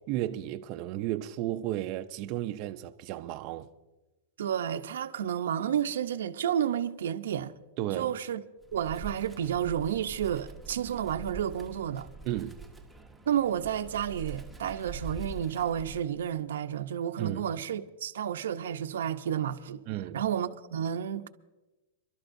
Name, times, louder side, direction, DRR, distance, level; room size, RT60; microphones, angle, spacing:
voice 1, 0.1-3.7 7.8-8.1 12.2-12.6 17.2-17.4 19.9-20.2, right 13 dB, 40° right, 0.5 m, -33 dB
voice 2, 4.4-7.5 7.9-8.4 8.7-12.1 13.3-19.8 20.1-21.3, right 9 dB, 90° right, 0.8 m, -31 dB
Wind, 8.6-16.4, right 4 dB, ahead, 0.9 m, -44 dB
29.0 x 12.5 x 2.6 m
supercardioid pair, 155°, 0 cm